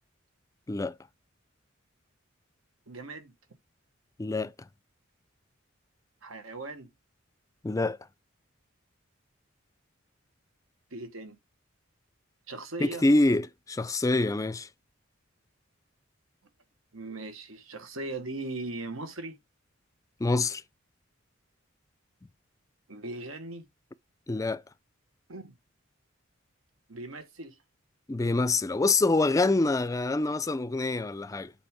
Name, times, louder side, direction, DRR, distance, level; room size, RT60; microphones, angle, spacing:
voice 1, 2.9-3.3 6.2-6.9 10.9-11.4 12.5-13.0 16.9-19.4 22.9-23.7 25.3-25.5 26.9-27.6, right 2 dB, 85° right, 1.4 m, -39 dB
voice 2, 4.2-4.5 7.6-8.0 12.8-14.7 20.2-20.6 24.3-24.6 28.1-31.5, left 2 dB, 15° left, 0.3 m, -26 dB
7.7 x 4.4 x 3.6 m
head